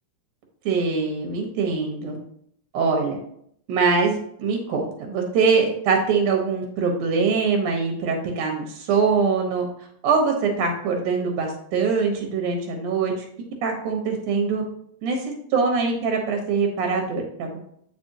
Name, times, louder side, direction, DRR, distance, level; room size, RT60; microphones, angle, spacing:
voice 1, 0.6-2.2 2.7-3.2 3.7-9.6 10.0-13.1 13.6-14.6 15.0-17.6, right 5 dB, 90° right, 2 dB, 3.0 m, -23 dB
7.9 x 6.2 x 3.0 m, 0.68 s
omnidirectional pair, 3.4 m